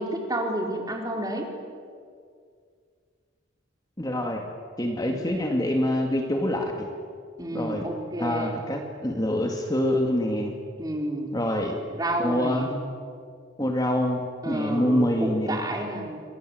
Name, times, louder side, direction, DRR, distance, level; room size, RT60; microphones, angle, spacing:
voice 1, 0.0-1.5 5.1-5.4 7.4-8.6 10.8-11.4 11.9-12.9 14.4-16.2, right 1 dB, 20° right, 2 dB, 4.2 m, -30 dB
voice 2, 4.0-4.4 4.8-6.9 7.5-7.9 8.2-10.5 11.3-11.7 12.2-12.7 13.6-15.6, left 1 dB, 20° left, 2 dB, 2.3 m, -26 dB
28.5 x 25.5 x 8.0 m, 2.1 s
head